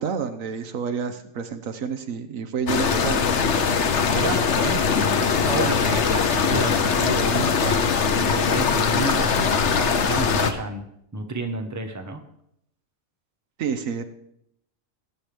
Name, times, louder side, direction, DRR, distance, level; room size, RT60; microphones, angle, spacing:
voice 1, 0.0-3.2 13.6-14.0, right 6 dB, 70° right, 9 dB, 1.2 m, -29 dB
sound 1, 2.7-10.5, left 5 dB, 60° left, 1.1 m, -21 dB
voice 2, 4.1-7.8 8.2-10.8 11.1-12.2, right 2 dB, 15° right, 4 dB, 1.0 m, -30 dB
19.0 x 9.0 x 3.4 m, 0.74 s
omnidirectional pair, 1.5 m